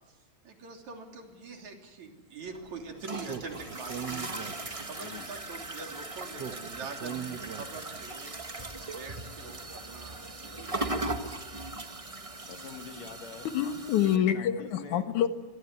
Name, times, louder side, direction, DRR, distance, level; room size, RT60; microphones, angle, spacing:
voice 1, 0.4-11.6, right 4 dB, 75° right, 3 dB, 4.6 m, -45 dB
sound 1, 2.5-14.2, right 2 dB, 35° right, 0.5 m, -39 dB
Speech, 3.2-5.1 6.4-8.1, right 8 dB, 55° right, 1.3 m, -40 dB
voice 2, 12.5-13.5 14.0-15.1, left 6 dB, 65° left, 4 dB, 3.7 m, -44 dB
voice 3, 13.5-15.3, left 10 dB, 90° left, 8 dB, 2.9 m, -26 dB
26.0 x 23.5 x 9.8 m, 1.2 s
omnidirectional pair, 3.3 m